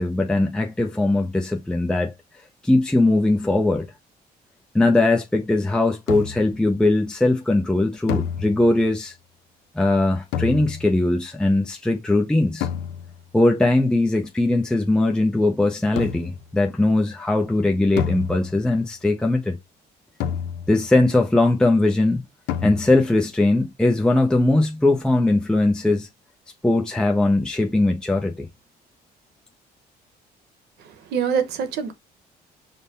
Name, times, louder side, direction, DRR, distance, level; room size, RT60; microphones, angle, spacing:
voice 1, 0.0-2.1 2.6-3.9 4.7-9.1 9.7-12.7 13.3-19.6 20.7-22.2 22.6-26.1 26.6-28.5, left 2 dB, 5° left, 0.5 m, -20 dB
sound 1, 6.1-6.6 8.1-8.9 10.3-11.1 12.6-13.3 16.0-16.5 18.0-18.8 20.2-21.0 22.5-23.2, left 8 dB, 85° left, 0.5 m, -29 dB
voice 2, 30.8-31.9, right 7 dB, 75° right, 0.9 m, -25 dB
5.3 x 2.1 x 4.0 m
cardioid pair, 110°, 17 cm